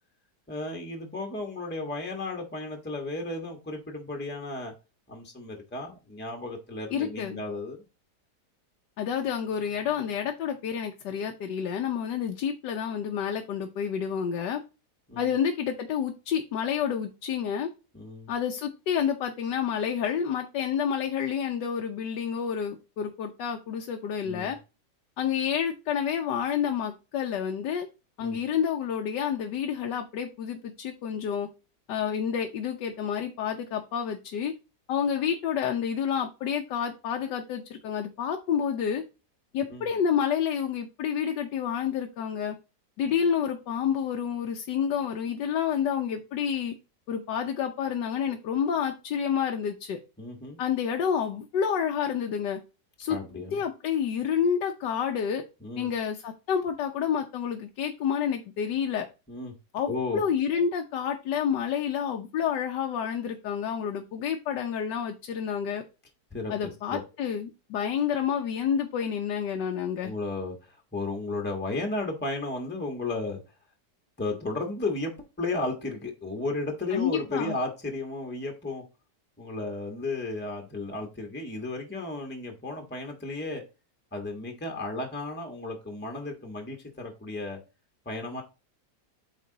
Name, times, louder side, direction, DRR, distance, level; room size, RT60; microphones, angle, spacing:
voice 1, 0.5-4.7 5.1-7.8 15.1-15.4 17.9-18.3 24.2-24.5 28.2-28.4 39.7-39.9 50.2-50.6 53.1-53.6 55.6-55.9 59.3-59.5 59.9-60.2 66.3-67.0 70.0-73.4 74.2-78.8 79.4-83.6 84.1-87.6 88.0-88.4, left 2 dB, 5° left, 3 dB, 1.3 m, -34 dB
voice 2, 6.9-7.4 9.0-14.6 15.2-17.7 18.3-24.6 25.2-27.9 28.2-31.5 31.9-34.5 34.9-39.0 39.5-42.6 43.0-46.7 47.1-50.0 50.6-52.6 53.0-53.2 53.5-55.4 55.8-59.1 59.7-65.8 66.5-70.1 76.9-77.6, left 8 dB, 85° left, 4 dB, 1.4 m, -29 dB
8.5 x 3.7 x 3.9 m, 0.30 s
omnidirectional pair, 1.8 m